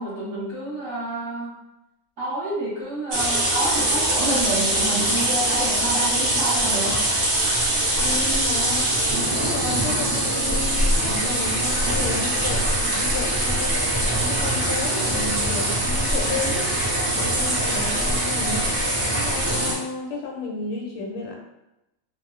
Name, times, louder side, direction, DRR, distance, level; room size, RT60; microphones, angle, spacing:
voice 1, 0.0-1.5 2.2-7.0, right 1 dB, 60° right, -10 dB, 1.2 m, -28 dB
sound 1, 3.1-19.7, right 1 dB, 80° right, 0.5 m, -23 dB
voice 2, 7.9-8.9 9.3-13.8 14.2-16.7 17.1-18.7 19.1-21.4, left 3 dB, 90° left, 0 dB, 1.3 m, -32 dB
2.9 x 2.0 x 2.4 m, 0.91 s
omnidirectional pair, 1.9 m